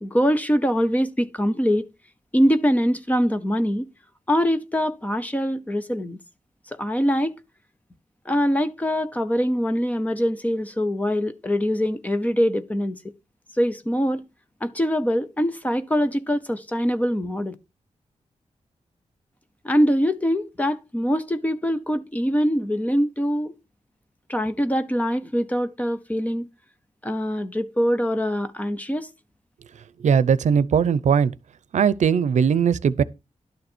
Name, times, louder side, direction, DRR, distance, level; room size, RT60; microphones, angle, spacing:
voice 1, 0.0-1.8 2.3-3.9 4.3-6.2 6.7-7.3 8.3-13.0 13.6-14.3 14.6-17.5 19.6-23.5 24.3-26.5 27.0-29.1, equal, 10° left, 0.8 m, -23 dB
voice 2, 30.0-31.3 31.7-33.0, right 7 dB, 80° right, 0.6 m, -19 dB
11.5 x 6.7 x 4.4 m
wide cardioid pair, 180°, 12 cm